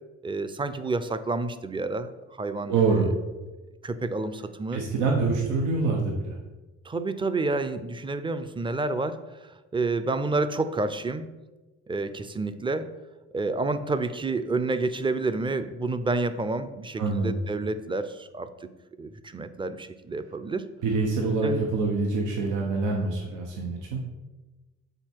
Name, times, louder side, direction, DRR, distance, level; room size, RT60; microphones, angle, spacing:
voice 1, 0.2-3.2 3.8-4.8 6.9-11.3 11.9-12.9 13.3-18.5 19.0-20.6 21.4-21.7, right 3 dB, 15° right, 11 dB, 0.5 m, -29 dB
voice 2, 2.7-3.1 4.7-6.3 17.0-17.4 20.8-24.0, right 4 dB, 90° right, 0 dB, 1.0 m, -25 dB
7.8 x 4.2 x 4.6 m, 1.2 s
cardioid pair, 90°, 30 cm